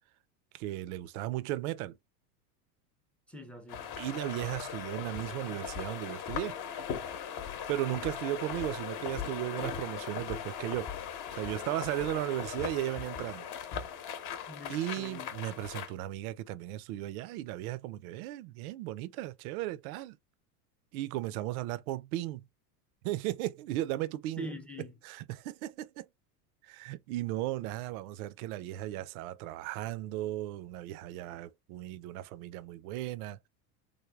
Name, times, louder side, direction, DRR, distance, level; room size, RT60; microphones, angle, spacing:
voice 1, 0.5-2.0 4.0-6.6 7.7-10.9 11.3-13.5 14.7-20.2 20.9-22.5 23.0-24.5 25.0-26.1 26.6-33.5, right 15 dB, 65° right, 0.5 m, -36 dB
voice 2, 3.3-4.0 14.5-15.3 24.4-25.0, equal, 5° left, 0.5 m, -43 dB
sound 1, 3.7-15.9, left 8 dB, 40° left, 0.8 m, -39 dB
3.4 x 2.1 x 3.3 m
supercardioid pair, 120°, 47 cm